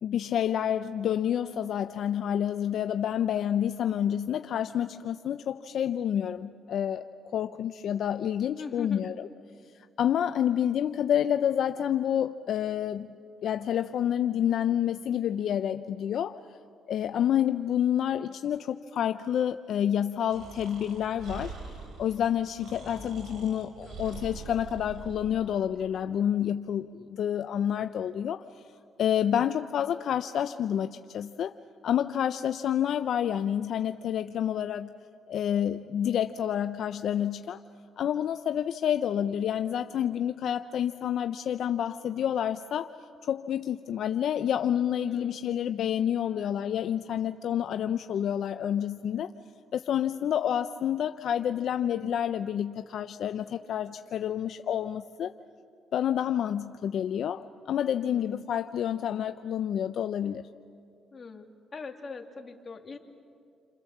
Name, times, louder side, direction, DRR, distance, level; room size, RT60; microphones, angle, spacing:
voice 1, 0.0-7.0 7.3-9.1 9.8-13.1 13.4-16.4 16.9-21.5 22.0-28.4 29.0-31.5 31.8-34.9 35.3-37.6 38.0-42.9 43.2-49.3 49.7-55.3 55.9-60.4, left 9 dB, 70° left, 9 dB, 0.6 m, -28 dB
voice 2, 8.6-9.1 22.8-23.2 23.8-24.2 45.0-45.5 46.2-46.6 57.9-58.3 61.1-61.5 61.7-63.0, left 4 dB, 35° left, 3 dB, 2.7 m, -42 dB
Breathing, 20.3-25.4, right 4 dB, 75° right, 5.4 m, -43 dB
29.5 x 26.0 x 7.3 m, 2.3 s
cardioid pair, 90°, 0 cm